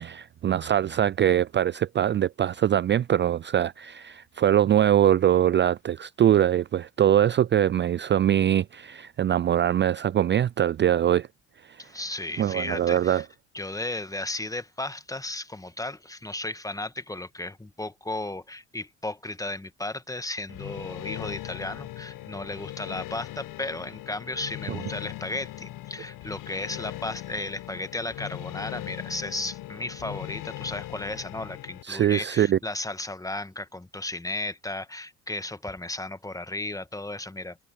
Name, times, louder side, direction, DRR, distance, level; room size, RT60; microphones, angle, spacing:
voice 1, 0.0-11.3 11.6-11.9 12.4-13.2 31.8-32.6, right 10 dB, 30° right, 0.4 m, -23 dB
voice 2, 11.8-13.3 13.5-37.6, left 2 dB, 10° left, 1.6 m, -34 dB
sound 1, 20.5-31.8, left 16 dB, 65° left, 1.2 m, -39 dB
hypercardioid pair, 65°, 36 cm